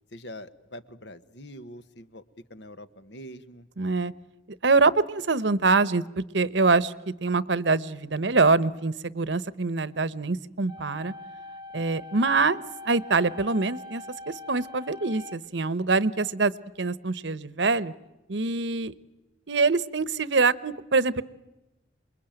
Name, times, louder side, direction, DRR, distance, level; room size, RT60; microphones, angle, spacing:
voice 1, 0.1-2.2 2.5-3.7 11.7-12.1, equal, 65° left, 12 dB, 1.4 m, -44 dB
voice 2, 3.8-4.1 4.6-11.1 11.7-16.5 16.8-17.9 18.3-18.9 19.5-21.2, right 3 dB, 70° right, 17 dB, 1.0 m, -24 dB
sound 1, 10.7-15.7, left 2 dB, 20° right, 0.9 m, -43 dB
28.0 x 22.0 x 9.0 m, 1.0 s
head